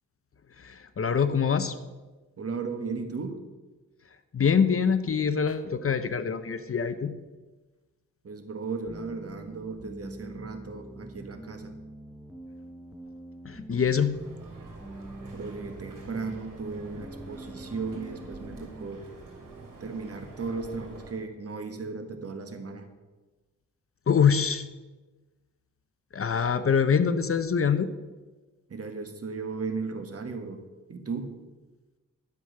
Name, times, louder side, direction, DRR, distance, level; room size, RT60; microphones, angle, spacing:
voice 1, 0.6-1.7 4.3-7.1 13.4-14.2 24.1-24.6 26.1-27.9, left 6 dB, 45° left, 11 dB, 0.7 m, -24 dB
voice 2, 2.4-3.4 8.2-11.7 15.3-19.0 19.8-22.9 28.7-30.6 30.9-31.4, right 4 dB, 50° right, 6 dB, 1.5 m, -36 dB
sound 1, 8.9-18.9, right 1 dB, ahead, 0.8 m, -45 dB
sound 2, 14.1-21.1, right 3 dB, 80° right, 3.3 m, -47 dB
12.0 x 7.4 x 6.5 m, 1.2 s
wide cardioid pair, 125°, 32 cm